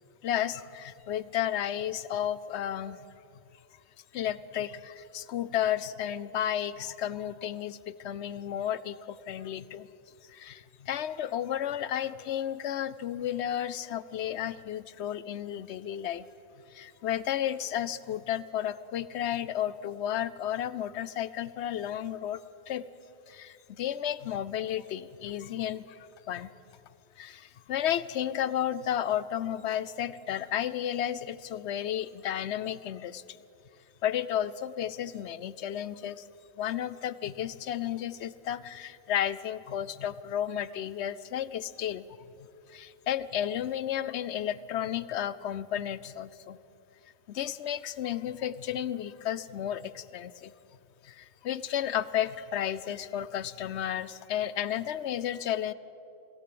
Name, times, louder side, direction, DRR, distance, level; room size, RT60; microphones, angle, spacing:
voice 1, 0.2-3.0 4.1-9.9 10.3-16.3 16.7-22.4 22.7-22.8 23.3-26.5 27.2-33.4 34.0-36.2 36.6-42.0 42.7-46.6 47.3-50.5 51.0-55.7, left 10 dB, 60° left, 17 dB, 0.8 m, -32 dB
23.5 x 16.5 x 7.7 m, 2.8 s
omnidirectional pair, 1.5 m